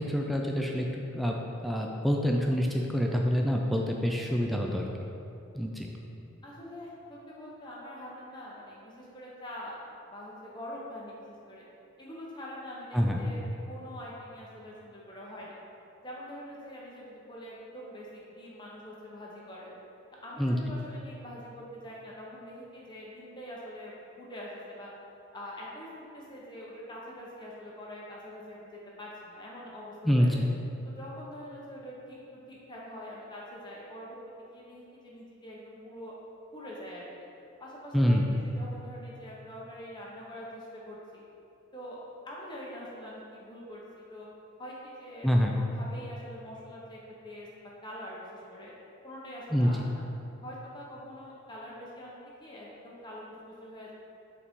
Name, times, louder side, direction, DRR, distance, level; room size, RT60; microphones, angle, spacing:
voice 1, 0.0-1.4 1.6-4.8 5.5-5.9 12.9-13.2 20.4-20.6 30.0-30.3 37.9-38.2 45.2-45.5 49.5-49.7, equal, ahead, 0 dB, 0.4 m, -26 dB
voice 2, 6.4-9.8 10.1-11.6 12.0-15.6 16.0-19.7 20.2-24.9 25.3-30.5 30.8-36.1 36.5-37.1 37.6-41.2 41.7-42.0 42.2-44.3 44.6-48.7 49.0-50.0 50.4-53.2 53.6-53.9, equal, 20° left, -5 dB, 0.8 m, -44 dB
8.4 x 4.1 x 3.6 m, 2.8 s
head